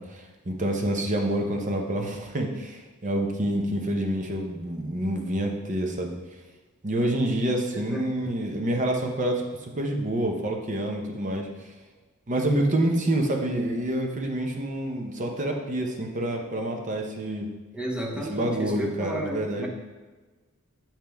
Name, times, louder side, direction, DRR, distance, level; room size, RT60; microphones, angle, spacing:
voice 1, 0.0-6.1 6.8-11.5 12.3-17.5 18.3-19.7, right 1 dB, 35° right, 2 dB, 0.7 m, -27 dB
voice 2, 7.7-8.3 17.7-19.7, right 1 dB, 5° right, -1 dB, 0.8 m, -33 dB
7.3 x 4.4 x 3.4 m, 1.3 s
head